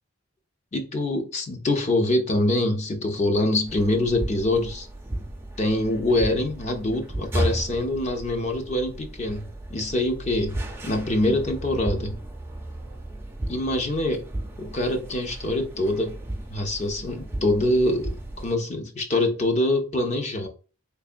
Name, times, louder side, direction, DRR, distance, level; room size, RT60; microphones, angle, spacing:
voice 1, 0.7-4.9 5.6-10.6 10.8-12.2 13.5-14.3 14.6-16.2 16.5-20.5, left 1 dB, 35° left, 0.6 m, -24 dB
sound 1, 3.7-18.5, right 1 dB, 10° right, 0.4 m, -34 dB
3.6 x 3.3 x 2.5 m
head